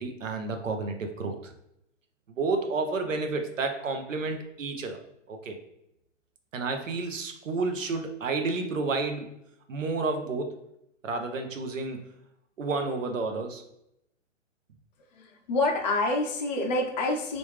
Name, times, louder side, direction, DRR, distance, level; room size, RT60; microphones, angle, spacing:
voice 1, 0.0-1.5 2.3-5.0 5.3-5.6 6.5-9.3 9.7-10.6 11.0-12.1 12.6-13.6, right 3 dB, 85° right, 5 dB, 0.7 m, -31 dB
voice 2, 15.1-17.4, left 2 dB, 35° left, 1 dB, 0.7 m, -27 dB
3.3 x 2.5 x 3.3 m, 0.81 s
hypercardioid pair, 135°, 37 cm